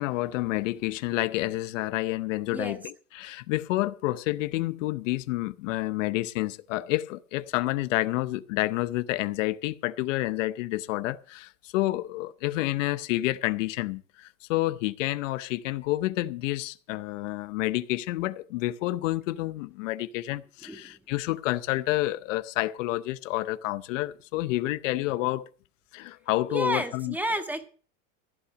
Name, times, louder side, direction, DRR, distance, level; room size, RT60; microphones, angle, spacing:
voice 1, 0.0-25.5 25.9-27.2, left 17 dB, 80° left, 0.8 m, -29 dB
voice 2, 20.7-21.0 26.5-27.6, right 1 dB, 5° right, 1.5 m, -31 dB
15.5 x 5.8 x 8.2 m
supercardioid pair, 150°, 37 cm